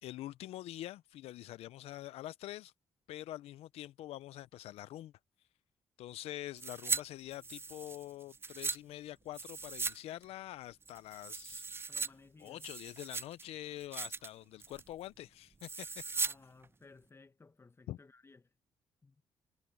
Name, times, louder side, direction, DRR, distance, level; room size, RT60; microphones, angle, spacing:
voice 1, 0.0-2.7 3.1-5.1 6.0-12.0 12.4-16.0 17.9-18.0, left 14 dB, 85° left, 0.5 m, -45 dB
sound 1, 6.6-7.0 7.3-8.8 9.3-10.0 10.2-10.3 10.8-12.1 12.5-13.4 13.8-14.3 14.6-14.9 15.6-16.3 16.6-16.7, right 4 dB, 25° right, 0.4 m, -38 dB
voice 2, 11.9-12.7 16.2-18.5 19.0-19.2, left 3 dB, 25° left, 1.2 m, -59 dB
cardioid pair, 75°, 10 cm